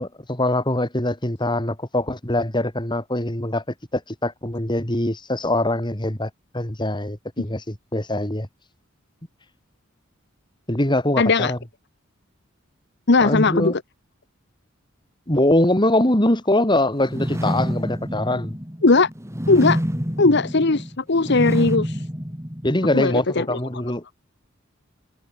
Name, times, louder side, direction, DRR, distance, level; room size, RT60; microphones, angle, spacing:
voice 1, 0.0-3.6 3.9-8.5 10.7-11.6 13.2-13.7 15.3-18.6 22.6-24.0, left 1 dB, 20° left, 3.6 m, -23 dB
voice 2, 11.2-11.5 13.1-13.8 18.8-19.1 19.5-19.8 20.2-22.0 22.9-23.6, left 3 dB, 55° left, 1.1 m, -18 dB
sound 1, 17.0-23.1, equal, 15° right, 6.5 m, -27 dB
head